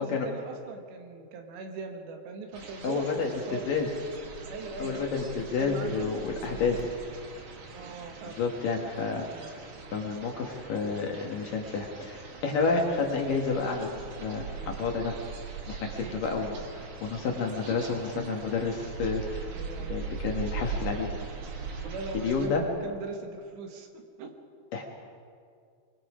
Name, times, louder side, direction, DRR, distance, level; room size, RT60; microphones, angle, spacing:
voice 1, 0.0-3.7 4.5-6.9 7.7-8.4 15.9-16.2 19.5-20.0 21.8-23.9 24.2-24.3, right 4 dB, 75° right, 4 dB, 3.7 m, -40 dB
sound 1, 2.5-22.5, right 5 dB, 50° right, 2.6 m, -40 dB
voice 2, 2.8-3.9 4.8-6.8 8.4-9.6 9.9-15.2 15.7-19.5 19.9-21.1 22.2-22.6 24.7-24.8, left 4 dB, 60° left, 1 dB, 2.7 m, -30 dB
25.5 x 20.5 x 5.0 m, 2.2 s
omnidirectional pair, 5.2 m